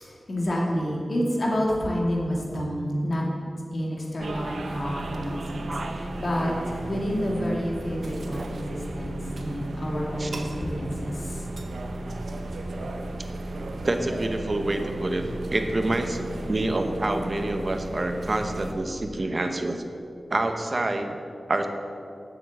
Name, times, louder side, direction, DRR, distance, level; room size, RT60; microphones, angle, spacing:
voice 1, 0.0-3.3 3.7-6.5 6.9-11.5, equal, 60° left, -3 dB, 2.3 m, -29 dB
sound 1, 4.2-18.7, right 1 dB, 90° right, 0.7 m, -34 dB
voice 2, 13.8-15.2 15.5-19.8 20.3-21.2 21.5-21.7, right 2 dB, 45° right, 6 dB, 0.9 m, -27 dB
7.7 x 7.2 x 7.6 m, 2.5 s
wide cardioid pair, 70°, 0 cm